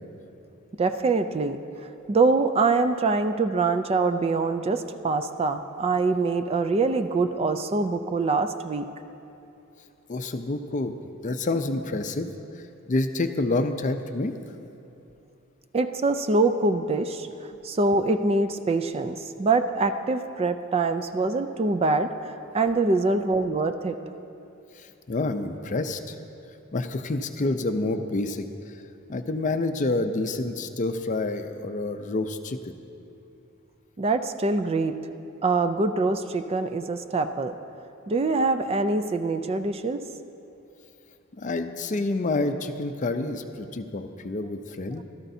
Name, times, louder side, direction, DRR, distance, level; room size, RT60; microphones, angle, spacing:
voice 1, 0.8-8.9 15.7-24.0 34.0-34.9 35.4-37.6 38.1-40.0, right 3 dB, 30° right, 9 dB, 0.4 m, -24 dB
voice 2, 10.1-10.9 11.2-12.3 12.9-14.3 24.8-26.1 26.7-28.5 29.1-32.7 41.4-45.0, left 2 dB, 40° left, 8 dB, 0.5 m, -28 dB
16.5 x 13.0 x 2.7 m, 2.8 s
head